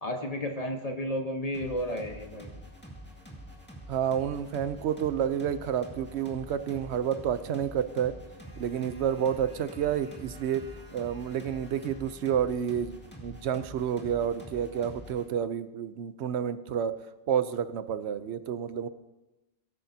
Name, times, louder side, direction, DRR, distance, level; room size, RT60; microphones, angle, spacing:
voice 1, 0.0-2.5, equal, 35° left, 3 dB, 1.3 m, -32 dB
sound 1, 1.5-15.3, equal, 10° left, 2.0 m, -46 dB
voice 2, 3.9-8.2 8.6-10.6 10.9-17.0 17.3-18.9, right 9 dB, 80° right, 13 dB, 0.9 m, -30 dB
18.0 x 10.0 x 2.7 m, 1.0 s
omnidirectional pair, 1.1 m